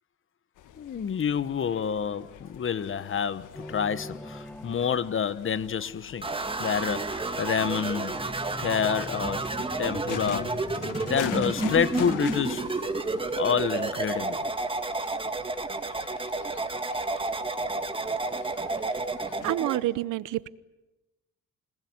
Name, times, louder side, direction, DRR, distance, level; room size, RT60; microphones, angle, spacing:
sound 1, 0.6-19.6, left 11 dB, 85° left, 1.6 m, -43 dB
voice 1, 0.8-6.3 6.6-8.1 8.6-9.4 9.8-10.5 11.0-12.8 13.4-14.4, left 7 dB, 45° left, 1.2 m, -28 dB
sound 2, 3.5-5.8 8.1-13.1, left 1 dB, 5° left, 1.4 m, -43 dB
sound 3, 6.2-19.8, right 3 dB, 15° right, 2.1 m, -31 dB
voice 2, 19.4-20.5, right 15 dB, 90° right, 0.9 m, -29 dB
28.5 x 19.5 x 9.6 m
cardioid pair, 90°, 30 cm